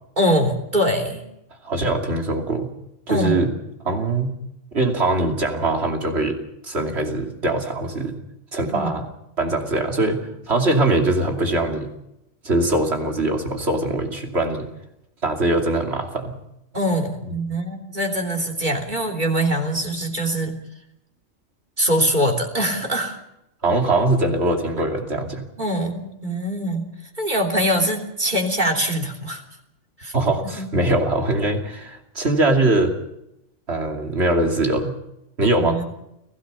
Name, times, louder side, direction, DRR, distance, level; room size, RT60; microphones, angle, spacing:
voice 1, 0.2-1.2 3.1-3.5 8.7-8.9 16.7-20.6 21.8-23.2 25.6-26.9 27.2-29.4 30.0-30.1 30.6-30.7 35.6-35.8, equal, 40° right, 1 dB, 3.5 m, -23 dB
voice 2, 1.6-2.7 3.1-3.5 3.8-4.3 4.7-6.4 6.6-8.1 8.5-9.0 9.4-11.9 12.4-14.7 15.2-16.3 17.2-17.3 23.6-25.4 30.1-33.0 33.7-34.9 35.4-35.8, right 2 dB, 60° right, 3 dB, 3.0 m, -22 dB
30.0 x 17.0 x 5.5 m, 0.85 s
omnidirectional pair, 1.3 m